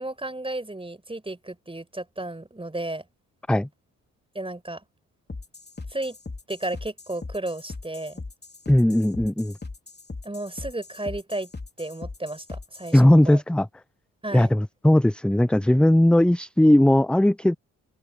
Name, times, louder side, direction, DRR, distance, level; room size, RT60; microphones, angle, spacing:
voice 1, 0.0-3.0 4.4-4.8 5.9-6.2 6.5-8.2 10.2-11.5 11.8-13.4 14.2-14.5, right 2 dB, 15° right, 5.3 m, -33 dB
sound 1, 5.3-13.0, left 3 dB, 25° left, 3.2 m, -39 dB
voice 2, 8.7-9.6 12.9-13.7 14.3-17.6, left 1 dB, 5° left, 0.5 m, -18 dB
open air
hypercardioid pair, 45°, 37 cm